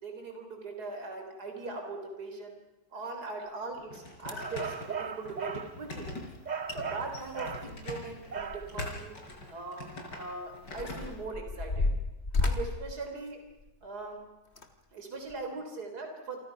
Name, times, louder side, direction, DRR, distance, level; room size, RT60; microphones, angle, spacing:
voice 1, 0.0-2.5 2.9-6.1 6.7-9.1 9.5-11.9 12.4-13.4 13.8-14.2 14.9-16.4, right 3 dB, 60° right, 4 dB, 4.3 m, -40 dB
sound 1, 3.7-11.1, left 2 dB, 75° left, 5.6 m, -43 dB
sound 2, 3.7-3.8 4.2-4.6 6.4-6.5 6.7-6.8 7.1-8.9 9.3-9.4 10.1-13.9 14.5-14.7 15.3-15.4, left 3 dB, 40° left, 2.2 m, -33 dB
sound 3, 4.4-5.7 6.5-7.7 8.3-8.7, right 6 dB, 35° right, 0.8 m, -37 dB
29.0 x 24.0 x 5.9 m, 1.0 s
omnidirectional pair, 1.9 m